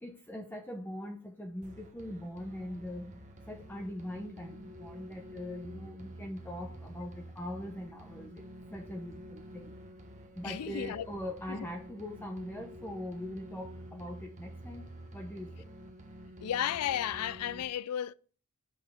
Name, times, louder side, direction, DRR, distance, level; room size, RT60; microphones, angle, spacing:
voice 1, 0.0-3.1 3.5-8.4 8.7-9.7 10.3-14.8 15.1-15.7, left 1 dB, 10° left, 0.7 m, -41 dB
sound 1, 1.6-17.6, right 1 dB, 35° right, 1.2 m, -49 dB
voice 2, 10.4-11.1 11.5-11.6 16.4-18.1, left 10 dB, 85° left, 0.4 m, -33 dB
6.1 x 5.5 x 6.9 m
head